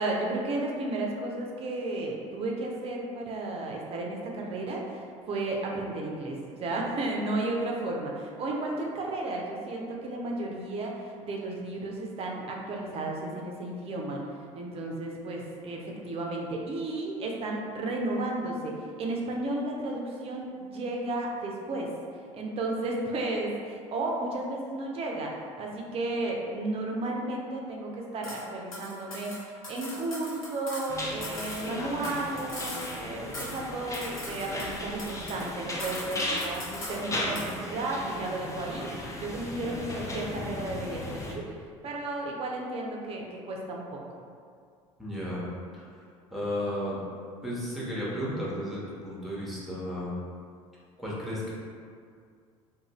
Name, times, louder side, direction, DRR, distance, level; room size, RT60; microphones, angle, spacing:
voice 1, 0.0-14.2 14.5-21.9 22.3-36.6 36.9-38.9 39.1-41.5 41.8-44.0, right 2 dB, 35° right, -1 dB, 0.5 m, -33 dB
sound 1, 28.2-28.4 28.7-30.9 31.2-33.1 33.3-33.7 33.9-35.5 35.8-37.0 37.4-37.6, left 1 dB, 90° left, 0.6 m, -40 dB
sound 2, 30.9-41.4, left 1 dB, 20° left, 0.5 m, -36 dB
voice 2, 45.0-45.5 45.7-45.9 46.3-47.0 47.4-50.1 51.0-51.5, equal, ahead, -7 dB, 0.9 m, -33 dB
2.5 x 2.2 x 3.0 m, 2.2 s
figure-of-eight pair, 65°, 17 cm